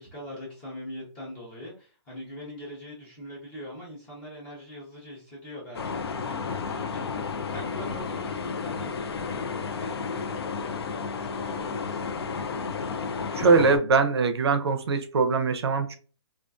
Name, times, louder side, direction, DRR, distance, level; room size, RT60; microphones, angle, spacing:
voice 1, 0.0-12.0, left 1 dB, 5° left, 0.6 m, -42 dB
sound 1, 5.7-13.8, left 5 dB, 60° left, 0.4 m, -32 dB
voice 2, 13.3-16.0, right 4 dB, 60° right, 0.5 m, -22 dB
2.5 x 2.4 x 2.2 m
hypercardioid pair, 175°, 15 cm